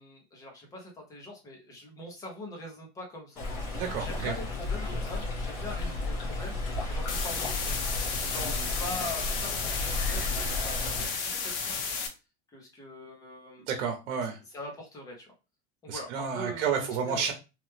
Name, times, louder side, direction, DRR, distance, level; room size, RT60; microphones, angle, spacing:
voice 1, 0.0-3.5 4.0-7.7 8.2-11.9 12.5-13.6 14.5-15.3 15.8-17.3, left 1 dB, 10° left, 0 dB, 0.5 m, -43 dB
Stream, 3.4-11.1, left 2 dB, 40° left, 1.0 m, -33 dB
voice 2, 3.8-4.3 8.4-8.7 13.7-14.4 15.9-17.3, right 6 dB, 90° right, 2 dB, 0.8 m, -31 dB
sound 1, 7.1-12.1, left 5 dB, 60° left, 0.8 m, -33 dB
3.1 x 2.0 x 3.1 m, 0.29 s
supercardioid pair, 180°, 34 cm